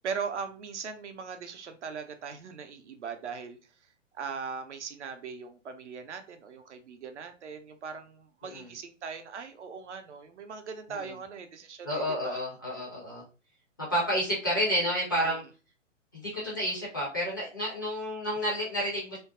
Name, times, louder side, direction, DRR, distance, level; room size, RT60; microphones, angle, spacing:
voice 1, 0.0-3.6 4.1-12.4 15.1-15.4, right 5 dB, 65° right, 8 dB, 0.5 m, -39 dB
voice 2, 11.8-13.2 13.8-15.4 16.1-19.2, equal, 20° left, -6 dB, 0.3 m, -30 dB
2.5 x 2.1 x 2.3 m, 0.33 s
figure-of-eight pair, 115°, 38 cm